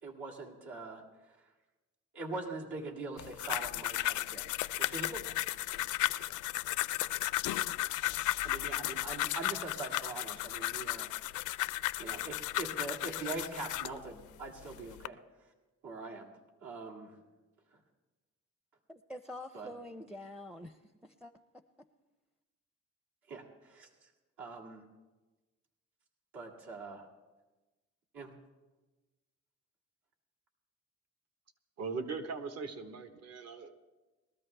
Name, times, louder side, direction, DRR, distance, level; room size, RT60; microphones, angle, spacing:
voice 1, 0.0-1.4 2.1-5.4 8.4-11.5 12.0-15.5 15.8-16.3 16.6-17.2 19.5-19.7 23.3-24.1 24.4-24.8 26.3-27.1 28.1-28.3, right 3 dB, 75° right, -3 dB, 2.2 m, -43 dB
sound 1, 3.2-14.0 14.6-15.1, left 16 dB, 80° left, 0.4 m, -35 dB
voice 2, 18.9-21.3, left 1 dB, 5° right, 9 dB, 0.5 m, -46 dB
voice 3, 31.8-33.7, right 4 dB, 55° right, 8 dB, 1.2 m, -39 dB
21.0 x 13.5 x 3.3 m, 1.2 s
cardioid pair, 90°, 30 cm